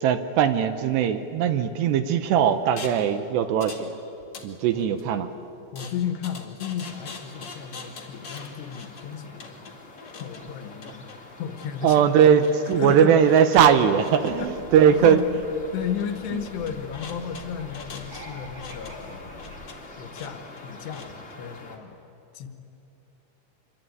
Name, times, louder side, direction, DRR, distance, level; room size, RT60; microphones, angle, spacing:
voice 1, 0.0-4.0 4.4-5.3 11.8-15.2 16.3-16.4, right 8 dB, 75° right, 10 dB, 2.8 m, -20 dB
sound 1, 2.8-3.1 3.6-3.9 4.2-5.0 5.7-21.4, left 4 dB, 45° left, 1.5 m, -44 dB
voice 2, 5.7-9.7 10.1-11.1 11.4-12.0 12.8-13.1 14.2-14.5 14.8-15.2 15.7-19.5 20.0-22.0 22.3-22.5, left 8 dB, 70° left, 8 dB, 3.0 m, -34 dB
sound 2, 6.8-21.8, left 2 dB, 20° left, 1.8 m, -46 dB
sound 3, 14.3-19.7, equal, 50° right, 5.8 m, -45 dB
25.5 x 24.0 x 9.3 m, 2.9 s
omnidirectional pair, 5.4 m